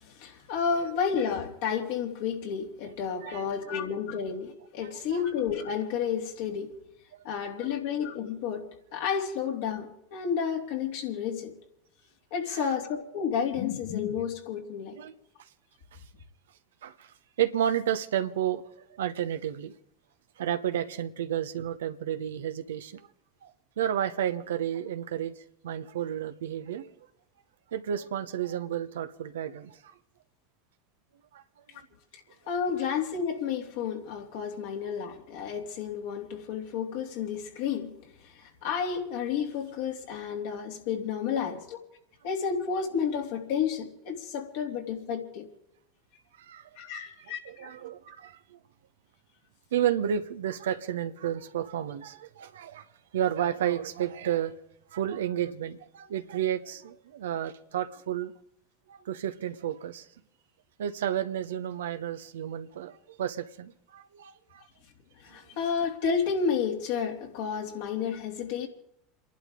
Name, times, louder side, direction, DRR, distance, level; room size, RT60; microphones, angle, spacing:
voice 1, 0.0-6.8 7.2-11.5 12.3-15.0 32.5-38.0 38.3-41.8 42.2-45.5 46.8-47.7 65.2-68.7, left 7 dB, 70° left, 3.0 m, -31 dB
voice 2, 3.2-3.8 5.0-5.2 7.6-7.8 12.5-12.7 14.9-15.1 16.8-19.7 20.4-23.1 23.4-26.9 27.7-29.8 31.3-31.4 46.4-48.6 49.7-52.9 53.1-54.5 54.9-58.3 58.9-60.1 60.8-64.6, right 10 dB, 80° right, 0.9 m, -32 dB
29.5 x 11.5 x 3.8 m
hypercardioid pair, 80°, 0 cm